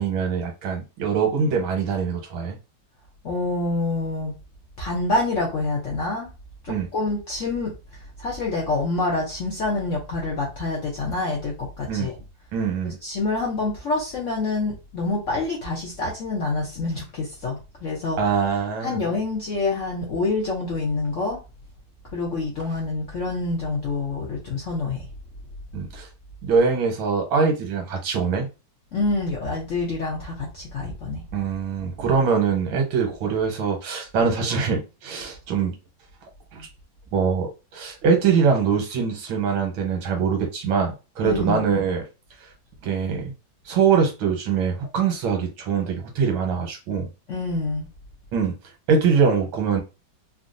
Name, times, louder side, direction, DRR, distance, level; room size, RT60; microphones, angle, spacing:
voice 1, 0.0-2.6 6.7-6.9 11.9-12.1 12.5-13.0 18.2-19.0 25.7-26.1 26.4-28.5 31.3-35.7 36.5-36.7 37.1-37.5 37.7-42.0 42.8-43.3 43.7-47.1 48.3-48.5 48.9-49.8, right 6 dB, 85° right, 3 dB, 1.7 m, -23 dB
voice 2, 3.2-4.3 4.8-6.3 6.6-12.2 12.8-18.2 18.8-21.4 22.1-25.1 28.9-31.2 41.2-41.7 47.3-47.9, left 3 dB, 65° left, -2 dB, 0.8 m, -27 dB
3.7 x 2.2 x 2.5 m, 0.29 s
omnidirectional pair, 2.2 m